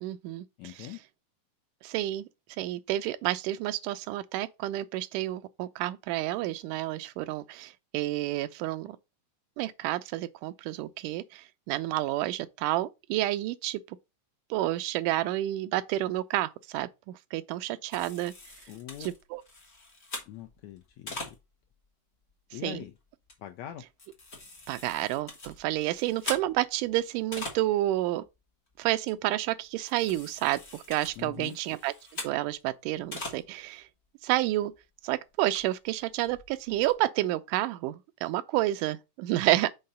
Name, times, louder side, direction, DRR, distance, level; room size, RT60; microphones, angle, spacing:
voice 1, 0.0-0.9 1.8-2.3 2.6-9.0 9.6-14.0 14.5-18.3 19.0-19.4 22.6-22.8 24.7-28.2 28.8-31.9 32.2-33.9 34.2-34.7 35.0-39.7, right 15 dB, 85° right, 2.1 m, -30 dB
voice 2, 0.6-1.0 18.7-19.1 20.3-21.4 22.5-22.9 23.4-23.8 31.2-31.6, left 12 dB, 80° left, 1.6 m, -42 dB
sound 1, 17.9-21.7 22.3-22.4 22.7-22.9 23.3-23.4 23.7-27.9 28.2-28.4 28.7-28.8 29.1-29.4 29.8-32.6 32.9-33.4 33.8-33.9 34.3-34.4 34.7-34.8 35.3-36.9, left 2 dB, 35° left, 1.1 m, -43 dB
5.7 x 3.7 x 5.4 m
omnidirectional pair, 3.7 m